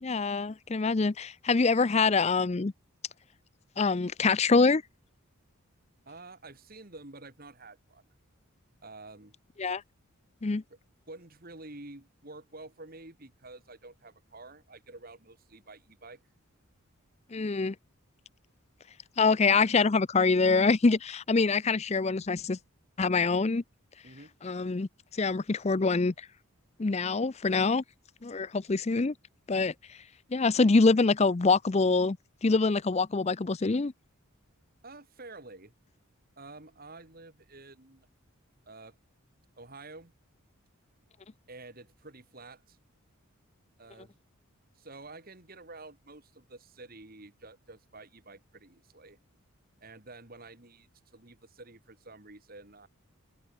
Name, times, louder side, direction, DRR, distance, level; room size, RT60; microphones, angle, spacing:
voice 1, 0.0-2.7 3.8-4.8 9.6-9.8 10.4-10.6 17.3-17.7 19.2-22.6 23.0-23.6 24.4-26.3 26.8-27.8 28.2-29.1 29.5-29.7 30.3-32.2 32.4-33.9, left 4 dB, 30° left, 0.5 m, -25 dB
voice 2, 6.1-8.0 8.8-9.4 11.1-16.2 24.0-24.3 34.8-35.7 36.4-38.1 38.7-39.0 39.6-40.1 41.5-42.8 43.8-44.2 44.7-49.2 49.8-52.9, right 2 dB, 40° right, 2.5 m, -49 dB
open air
head